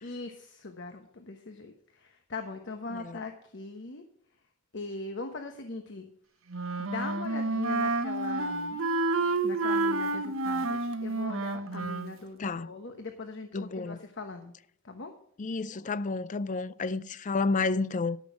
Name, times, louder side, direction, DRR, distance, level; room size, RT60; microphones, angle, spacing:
voice 1, 0.0-4.0 4.7-6.1 6.8-8.8 9.4-14.5 14.8-15.1, left 3 dB, 60° left, 1.1 m, -40 dB
Wind instrument woodwind instrument, 6.5-12.2, right 2 dB, 80° right, 1.0 m, -29 dB
voice 2, 13.5-14.0 15.4-18.2, left 3 dB, 40° left, 0.5 m, -30 dB
13.0 x 6.2 x 6.2 m
head